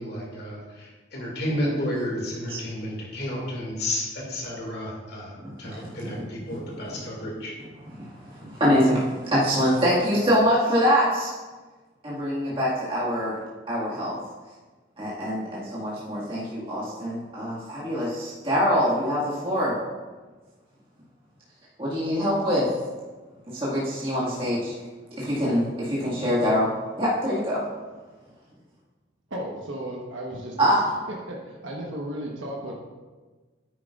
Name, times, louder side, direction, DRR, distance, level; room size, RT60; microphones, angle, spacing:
voice 1, 0.0-7.5, left 1 dB, 55° left, -3 dB, 2.4 m, -31 dB
voice 2, 5.4-6.8 8.0-11.4 12.0-13.4 13.7-14.2 15.0-19.8 21.8-22.7 23.5-24.7 25.2-26.7 27.0-27.6 30.6-30.8, equal, 30° right, -9 dB, 2.0 m, -24 dB
voice 3, 29.3-30.7 31.1-32.7, right 1 dB, 80° right, -2 dB, 1.2 m, -34 dB
9.6 x 9.2 x 2.5 m, 1.3 s
head